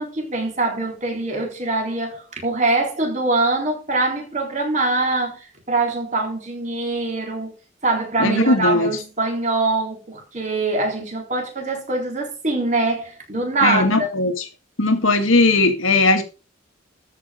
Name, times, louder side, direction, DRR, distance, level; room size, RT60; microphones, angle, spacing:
voice 1, 0.0-7.5 7.8-14.1, right 2 dB, 35° right, 3.9 m, -23 dB
voice 2, 8.2-8.9 13.6-14.4 14.8-16.2, left 2 dB, 90° left, 2.1 m, -18 dB
13.0 x 6.0 x 5.1 m
head